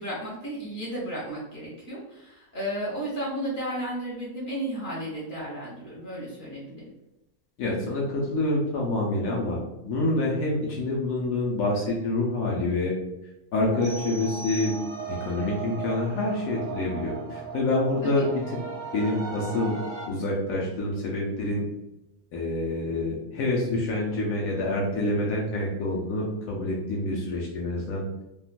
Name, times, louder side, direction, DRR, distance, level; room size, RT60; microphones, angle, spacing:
voice 1, 0.0-6.9 18.0-18.3, right 1 dB, 50° left, -6 dB, 1.5 m, -33 dB
voice 2, 7.6-12.9 13.5-14.8 15.1-18.6 18.9-19.8 20.1-21.7 22.3-28.2, left 2 dB, 85° left, -3 dB, 1.1 m, -27 dB
sound 1, 13.7-20.1, right 6 dB, 45° right, 0.6 m, -37 dB
sound 2, 13.8-15.3, right 1 dB, 15° left, 0.7 m, -41 dB
3.6 x 2.4 x 2.4 m, 0.93 s
omnidirectional pair, 1.4 m